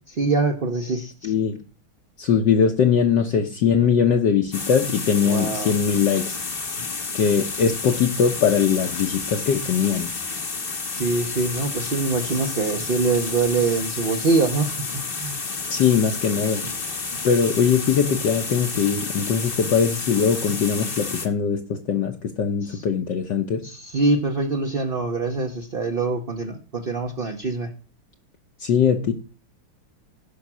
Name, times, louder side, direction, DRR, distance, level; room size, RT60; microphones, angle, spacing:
voice 1, 0.1-1.3 5.2-5.7 10.9-15.4 22.6-22.8 23.6-27.7, right 3 dB, 45° right, 0.7 m, -24 dB
voice 2, 1.2-1.6 2.2-6.4 7.1-10.1 15.7-16.6 17.2-23.6 28.6-29.1, left 7 dB, 60° left, 1.4 m, -21 dB
sound 1, 4.5-21.3, left 4 dB, 35° left, 1.0 m, -31 dB
15.5 x 5.9 x 6.1 m
omnidirectional pair, 2.4 m